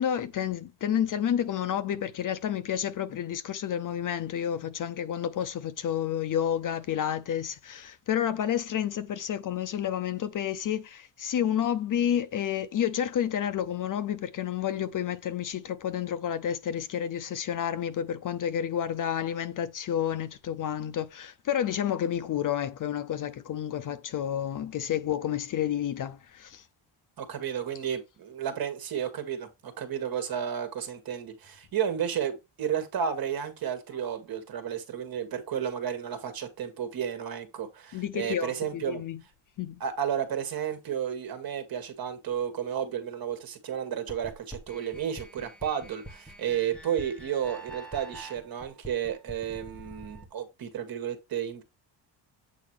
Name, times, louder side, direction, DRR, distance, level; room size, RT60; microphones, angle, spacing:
voice 1, 0.0-26.6 37.9-39.2 39.6-39.8, left 9 dB, 45° left, 0.6 m, -30 dB
voice 2, 27.2-39.0 39.8-51.6, right 8 dB, 50° right, 2.0 m, -32 dB
sound 1, 44.1-50.3, right 1 dB, ahead, 1.3 m, -45 dB
8.5 x 4.7 x 3.4 m
cardioid pair, 170°, 47 cm